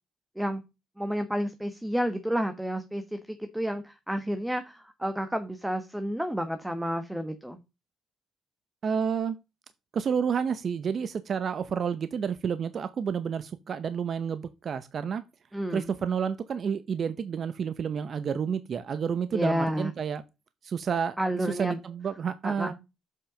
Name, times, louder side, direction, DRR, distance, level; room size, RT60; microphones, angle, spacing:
voice 1, 1.0-7.6 15.5-15.9 19.3-19.9 21.2-21.8 22.4-22.7, equal, 5° right, 1.2 m, -30 dB
voice 2, 8.8-9.4 9.9-15.2 15.7-20.2 20.6-21.2 21.5-22.7, right 7 dB, 55° right, 0.8 m, -30 dB
7.6 x 5.5 x 5.1 m
cardioid pair, 90°, 0 cm